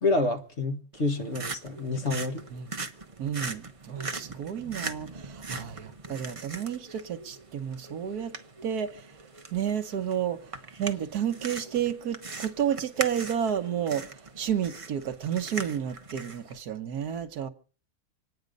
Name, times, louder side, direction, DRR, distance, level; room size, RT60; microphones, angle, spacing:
voice 1, 0.0-2.4, left 2 dB, 45° left, 1.9 m, -28 dB
sound 1, 0.9-16.5, right 3 dB, 25° right, 0.9 m, -41 dB
voice 2, 3.2-8.4 8.6-9.1 9.5-10.5 10.8-14.0 14.4-17.5, right 9 dB, 75° right, 1.5 m, -31 dB
26.0 x 9.7 x 5.3 m
omnidirectional pair, 1.7 m